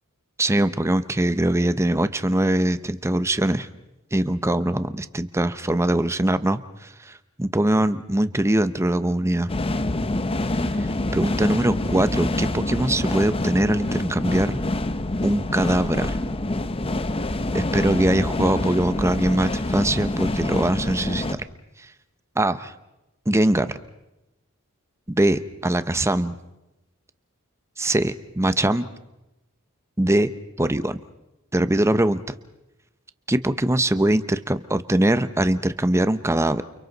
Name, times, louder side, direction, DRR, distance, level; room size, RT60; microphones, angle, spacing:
voice 1, 0.4-3.7 4.1-9.5 10.8-14.6 15.2-16.1 17.5-21.4 22.4-22.7 23.3-23.8 25.1-26.3 27.8-28.8 30.0-30.3 30.6-31.0 31.5-32.2 33.3-36.6, right 1 dB, 15° right, 12 dB, 0.7 m, -22 dB
sound 1, 9.5-21.3, left 2 dB, 25° left, 0.8 m, -26 dB
29.5 x 29.0 x 4.0 m, 0.93 s
head